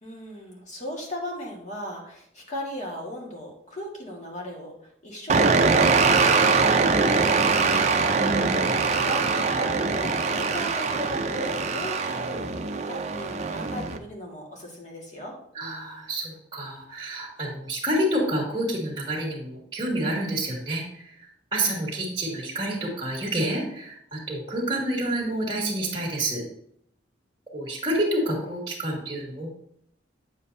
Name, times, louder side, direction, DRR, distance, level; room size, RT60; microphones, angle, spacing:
voice 1, 0.0-7.9 8.9-15.4, equal, 40° left, -1 dB, 1.8 m, -37 dB
sound 1, 5.3-14.0, right 4 dB, 40° right, 0.5 m, -22 dB
voice 2, 8.2-8.6 15.5-21.0 21.5-26.4 27.5-29.5, right 1 dB, 20° right, -5 dB, 2.0 m, -28 dB
8.3 x 7.2 x 2.7 m, 0.71 s
head